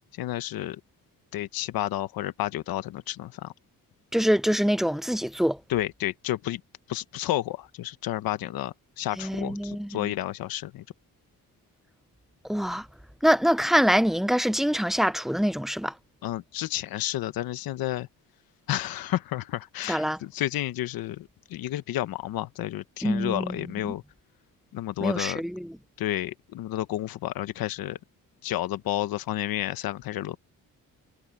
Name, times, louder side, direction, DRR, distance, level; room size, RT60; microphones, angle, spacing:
voice 1, 0.1-0.8 1.3-3.5 5.7-6.6 6.9-10.8 16.2-18.1 18.7-24.0 24.7-25.4 26.0-28.0 28.4-30.4, left 14 dB, 90° left, 1.0 m, -31 dB
voice 2, 4.1-5.6 9.2-10.1 12.5-12.9 13.2-15.9 19.9-20.2 23.0-23.6 23.8-23.9 25.0-25.7, equal, ahead, 0.5 m, -24 dB
cardioid pair, 80°, 35 cm